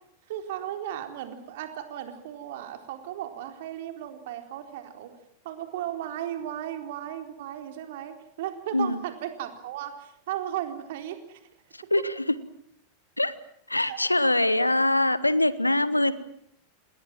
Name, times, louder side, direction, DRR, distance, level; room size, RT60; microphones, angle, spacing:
voice 1, 0.3-5.1 5.4-11.4 13.8-14.0, right 11 dB, 55° right, 5 dB, 4.1 m, -36 dB
voice 2, 11.7-12.1 13.2-13.3 13.7-16.1, left 1 dB, 85° left, 17 dB, 1.3 m, -23 dB
28.5 x 21.0 x 7.5 m, 0.74 s
figure-of-eight pair, 90°, 0 cm